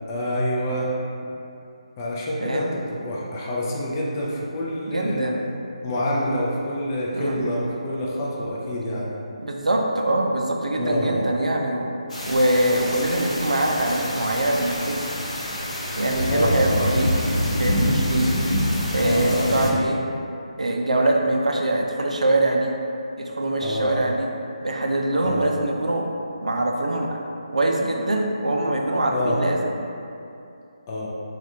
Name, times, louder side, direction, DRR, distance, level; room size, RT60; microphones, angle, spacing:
voice 1, 0.1-0.9 2.0-5.3 5.8-9.2 10.8-11.2 16.3-16.9 19.0-19.7 23.6-24.0 25.2-25.5 29.1-29.4 30.9-31.1, left 1 dB, 25° left, -5 dB, 0.4 m, -27 dB
voice 2, 2.4-2.7 4.9-5.4 7.1-7.4 9.4-11.9 12.3-15.2 16.0-17.1 17.5-18.3 18.9-20.0 20.6-22.7 23.2-24.3 24.6-26.1 26.4-27.2 27.5-29.7, right 1 dB, 85° right, 1 dB, 0.4 m, -23 dB
sound 1, 12.1-19.7, equal, 75° left, 0.8 m, -26 dB
3.3 x 2.3 x 2.6 m, 2.7 s
figure-of-eight pair, 155°, 4 cm